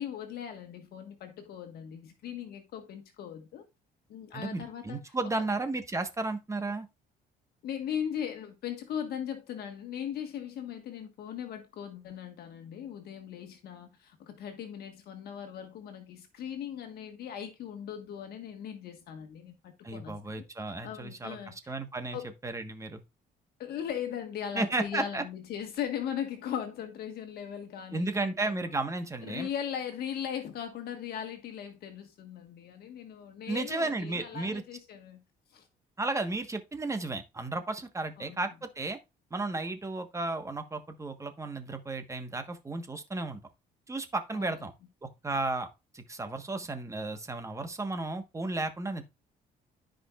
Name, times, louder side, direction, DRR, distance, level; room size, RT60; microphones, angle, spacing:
voice 1, 0.0-3.7 4.1-5.1 7.6-20.4 20.8-21.8 22.1-22.3 23.6-28.7 29.2-35.2 35.5-35.7 38.2-38.5 44.3-44.6, left 9 dB, 70° left, 1.5 m, -39 dB
voice 2, 4.3-6.9 19.8-22.2 22.4-23.0 24.5-25.2 27.9-29.5 33.5-34.6 36.0-39.0 39.3-43.4 43.9-44.7 45.0-45.7 45.9-49.0, right 2 dB, 20° right, 1.3 m, -33 dB
13.5 x 5.2 x 2.4 m
cardioid pair, 110°, 17 cm